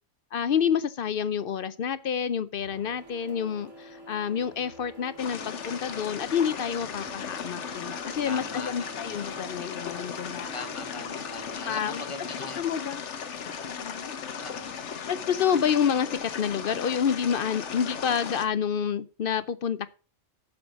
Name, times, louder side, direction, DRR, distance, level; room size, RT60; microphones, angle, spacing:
voice 1, 0.3-10.5 11.7-12.0 12.6-13.0 13.6-14.1 15.1-19.9, left 7 dB, 55° left, 0.7 m, -28 dB
Printer, 2.6-11.6, equal, 80° right, 3.6 m, -48 dB
sound 1, 5.2-18.5, left 7 dB, 75° left, 1.3 m, -37 dB
voice 2, 8.3-9.2 10.5-12.6 14.4-14.7, left 3 dB, 25° left, 1.2 m, -40 dB
7.9 x 6.7 x 7.0 m
omnidirectional pair, 1.2 m